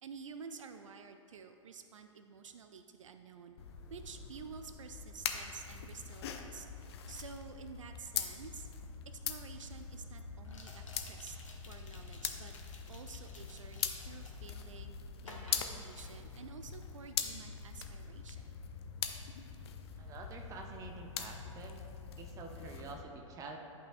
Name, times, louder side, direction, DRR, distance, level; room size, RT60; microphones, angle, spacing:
voice 1, 0.0-3.6 3.9-6.7 7.1-8.7 9.1-11.4 11.7-12.5 12.9-15.0 15.2-18.5, right 6 dB, 70° right, 7 dB, 0.4 m, -50 dB
sound 1, 3.6-23.0, left 7 dB, 50° left, 0.6 m, -42 dB
sound 2, 8.8-8.9 10.4-14.7 15.2-16.5 16.8-17.2, left 3 dB, 70° left, 1.1 m, -56 dB
voice 2, 20.0-21.8 22.2-23.6, right 3 dB, 20° right, 2 dB, 0.7 m, -48 dB
11.5 x 5.5 x 2.5 m, 2.7 s
figure-of-eight pair, 110°, 17 cm